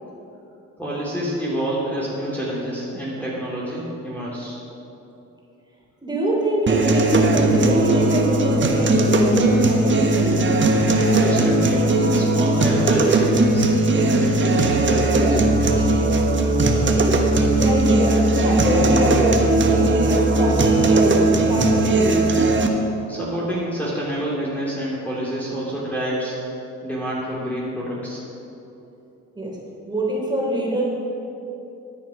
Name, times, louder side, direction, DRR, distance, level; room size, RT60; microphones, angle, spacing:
voice 1, 0.8-4.6 10.9-13.7 14.1-15.9 23.1-26.4 26.8-28.2, right 1 dB, 5° left, -7 dB, 3.0 m, -27 dB
voice 2, 6.0-10.4 17.5-21.2 21.4-22.1 29.4-29.6 29.9-30.8, right 1 dB, 15° right, -3 dB, 3.5 m, -24 dB
sound 1, 6.7-22.7, right 2 dB, 40° right, 1.4 m, -18 dB
14.0 x 9.9 x 5.1 m, 2.9 s
cardioid pair, 90°, 30 cm